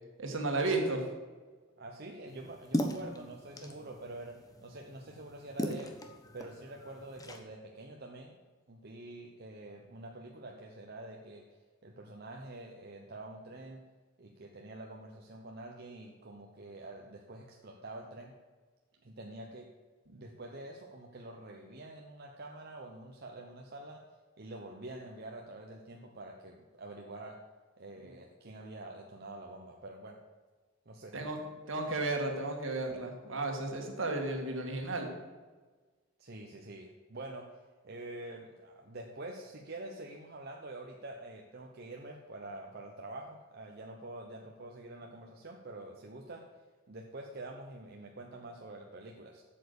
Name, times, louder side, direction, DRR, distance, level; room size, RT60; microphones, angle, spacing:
voice 1, 0.2-1.0 20.1-20.2 31.1-31.4 31.7-35.1, right 2 dB, 70° right, 2 dB, 1.9 m, -33 dB
voice 2, 1.8-5.9 6.3-8.3 8.7-11.4 11.8-13.8 14.2-18.3 19.0-19.7 20.1-24.0 24.4-27.4 27.8-30.2 30.9-31.1 36.2-37.5 37.8-46.4 46.9-49.4, right 2 dB, 50° right, 0 dB, 0.9 m, -46 dB
sound 1, 2.3-7.4, equal, 20° left, 1.0 m, -39 dB
8.1 x 7.5 x 6.8 m, 1.4 s
head